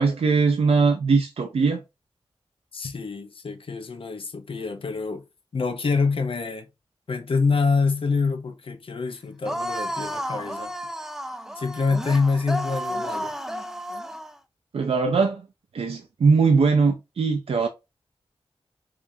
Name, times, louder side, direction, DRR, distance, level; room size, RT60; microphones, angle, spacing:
voice 1, 0.0-1.8 14.7-15.4 15.7-17.7, right 4 dB, 80° right, 0.5 m, -21 dB
voice 2, 2.7-5.2 5.5-6.7 7.1-10.7 11.6-13.3, left 4 dB, 65° left, 0.7 m, -26 dB
sound 1, 9.4-14.3, equal, 5° right, 0.3 m, -32 dB
4.8 x 2.5 x 2.7 m
wide cardioid pair, 80°, 10 cm